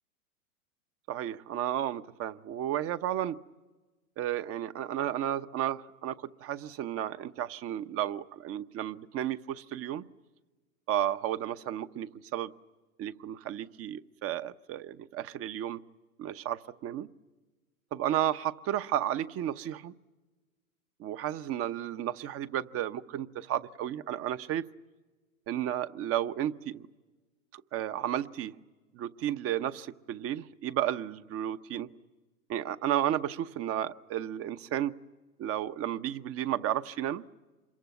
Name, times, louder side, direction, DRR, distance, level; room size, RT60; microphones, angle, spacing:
voice 1, 1.1-3.4 4.2-10.0 10.9-12.5 13.0-15.8 16.2-17.1 17.9-19.9 21.0-24.6 25.5-26.9 27.5-28.6 28.9-31.9 32.5-35.0 35.4-37.2, right 11 dB, 35° right, 12 dB, 0.9 m, -33 dB
27.0 x 22.5 x 9.4 m, 1.2 s
hypercardioid pair, 100°, 42 cm